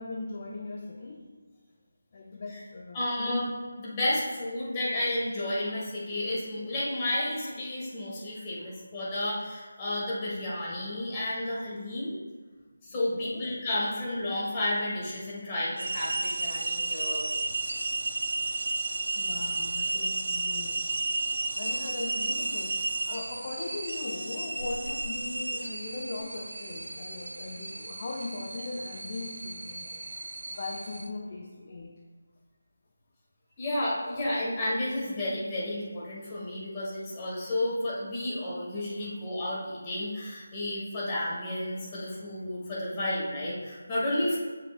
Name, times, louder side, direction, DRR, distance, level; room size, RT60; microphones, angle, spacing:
voice 1, 0.0-1.4 2.1-3.5 8.6-8.7 12.9-13.5 19.1-20.9 21.5-30.0 30.5-31.9 39.0-39.2, left 3 dB, 35° left, 0 dB, 0.6 m, -39 dB
voice 2, 2.9-3.4 3.8-12.1 12.8-17.3 21.3-21.4 33.6-44.4, left 1 dB, 20° left, -7 dB, 1.9 m, -31 dB
sound 1, 15.8-31.1, right 3 dB, 55° right, 0.5 m, -33 dB
7.4 x 6.5 x 2.3 m, 1.4 s
figure-of-eight pair, 160°, 0 cm